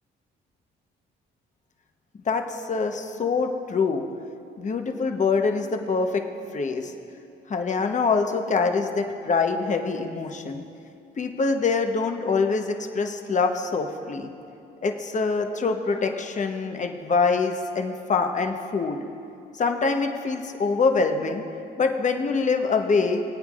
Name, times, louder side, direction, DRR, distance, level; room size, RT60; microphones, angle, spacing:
voice 1, 2.3-4.1 4.6-6.2 6.5-6.9 7.5-10.6 11.2-14.3 14.8-19.0 19.6-21.4 21.8-23.2, left 4 dB, 40° left, 5 dB, 1.0 m, -24 dB
25.0 x 8.7 x 2.5 m, 2.5 s
cardioid pair, 90°, 20 cm